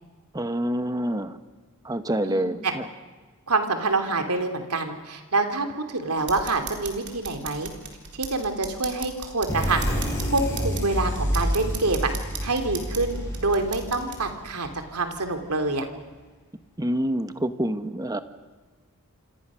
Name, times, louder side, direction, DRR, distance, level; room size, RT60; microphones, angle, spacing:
voice 1, 0.3-1.4 1.8-2.8 16.8-18.2, right 1 dB, 15° right, 10 dB, 1.1 m, -27 dB
voice 2, 2.2-2.7 3.5-7.7 8.1-9.8 10.2-12.1 12.4-15.9, right 3 dB, 90° right, 6 dB, 2.9 m, -26 dB
sound 1, 6.2-14.2, right 5 dB, 55° right, 3.9 m, -39 dB
sound 2, 9.5-15.0, equal, 15° left, 6.6 m, -29 dB
28.0 x 26.0 x 6.3 m, 1.4 s
head